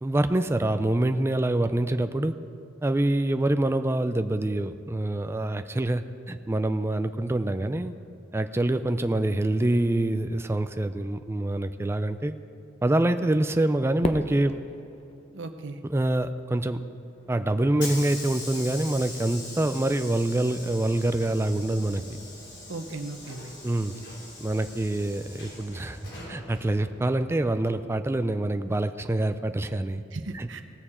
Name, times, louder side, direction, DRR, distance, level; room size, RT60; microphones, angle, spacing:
voice 1, 0.0-2.3 2.8-7.9 8.3-12.3 12.8-14.6 15.9-16.8 17.3-22.0 23.6-23.9 24.4-26.0 26.3-30.0 30.3-30.6, right 1 dB, 15° right, 9 dB, 0.4 m, -26 dB
Fireworks, 14.0-16.3, left 2 dB, 35° left, 0.6 m, -35 dB
voice 2, 15.3-15.8 22.7-23.5 30.1-30.6, right 2 dB, 80° right, 7 dB, 0.8 m, -37 dB
Hiss / Sliding door, 17.1-27.9, left 2 dB, 75° left, 3.0 m, -42 dB
18.0 x 6.8 x 4.3 m, 2.6 s
head